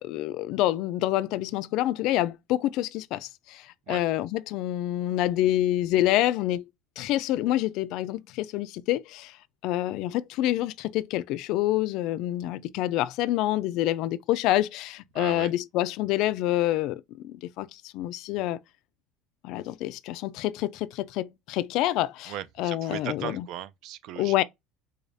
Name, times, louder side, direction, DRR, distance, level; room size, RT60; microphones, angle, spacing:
voice 1, 0.0-3.6 3.9-6.6 7.0-9.3 9.6-18.6 19.4-23.4 24.2-24.4, left 14 dB, 60° left, 0.3 m, -27 dB
voice 2, 15.1-15.5 22.3-24.4, right 11 dB, 60° right, 0.4 m, -38 dB
4.8 x 2.3 x 2.6 m
cardioid pair, 135°, 0 cm